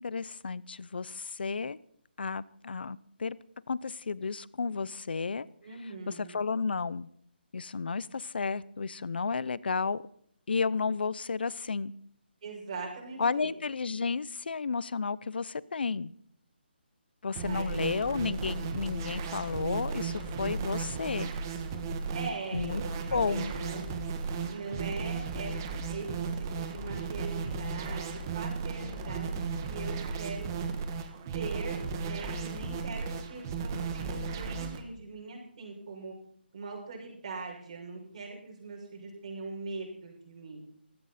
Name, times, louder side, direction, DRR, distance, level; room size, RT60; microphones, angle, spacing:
voice 1, 0.0-1.8 2.2-3.4 3.7-5.5 6.1-7.1 7.5-10.0 10.5-11.9 13.2-16.1 17.2-21.3 22.5-22.8 23.1-23.5, left 4 dB, 65° left, 21 dB, 0.7 m, -32 dB
voice 2, 5.6-6.4 12.4-13.5 17.4-17.9 22.1-23.8 24.2-26.1 26.3-30.8 31.3-36.1 36.5-40.6, right 4 dB, 40° right, -1 dB, 6.6 m, -41 dB
sound 1, 17.4-34.8, right 4 dB, 20° right, 1.5 m, -35 dB
18.0 x 15.5 x 4.3 m, 0.67 s
hypercardioid pair, 170°, 6 cm